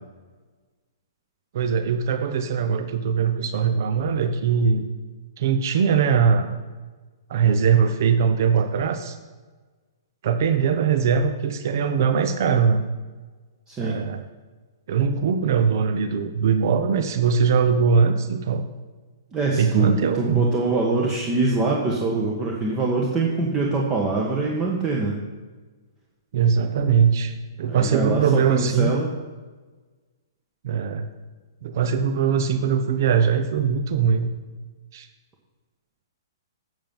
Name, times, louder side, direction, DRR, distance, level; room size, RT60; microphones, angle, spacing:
voice 1, 1.5-4.8 5.4-6.5 7.3-9.2 10.2-12.9 13.8-14.2 14.9-18.6 19.5-20.5 26.3-27.3 27.6-28.9 30.6-31.1 31.6-34.3 34.9-35.1, right 6 dB, 55° right, 8 dB, 0.8 m, -21 dB
voice 2, 13.7-14.0 19.3-25.2 27.7-29.1, right 3 dB, 20° right, -2 dB, 1.5 m, -24 dB
8.7 x 7.3 x 5.6 m, 1.3 s
figure-of-eight pair, 120°, 2 cm